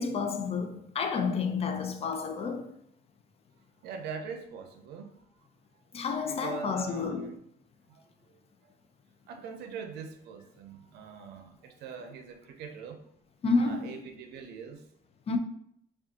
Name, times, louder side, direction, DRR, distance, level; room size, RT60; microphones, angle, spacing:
voice 1, 0.0-2.7 5.9-7.3 13.4-14.0 15.3-15.4, left 4 dB, 35° left, 0.5 m, -30 dB
voice 2, 3.8-5.2 6.2-7.4 7.9-8.7 9.3-13.0 13.6-14.9, right 5 dB, 75° right, 0.6 m, -42 dB
4.9 x 2.4 x 2.7 m
cardioid pair, 110°, 17 cm